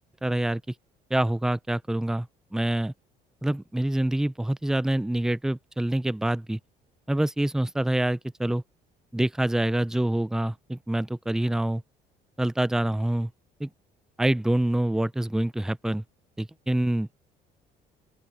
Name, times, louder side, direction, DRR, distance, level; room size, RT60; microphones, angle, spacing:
voice 1, 0.2-0.6 1.1-2.3 2.5-2.9 3.4-6.6 7.1-8.6 9.1-11.8 12.4-13.3 13.6-13.7 14.2-16.0 16.4-17.1, right 1 dB, 5° right, 0.4 m, -26 dB
open air
cardioid pair, 110°, 17 cm